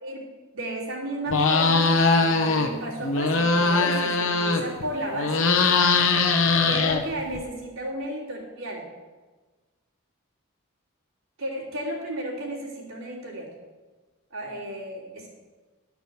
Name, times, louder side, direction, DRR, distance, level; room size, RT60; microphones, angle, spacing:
voice 1, 0.5-5.5 6.6-8.9 11.4-13.5 14.3-15.3, right 1 dB, 75° right, -4 dB, 3.4 m, -33 dB
sound 1, 1.3-2.7 3.0-4.8 5.1-7.4, left 4 dB, 65° left, 1.1 m, -21 dB
12.0 x 6.0 x 7.1 m, 1.3 s
head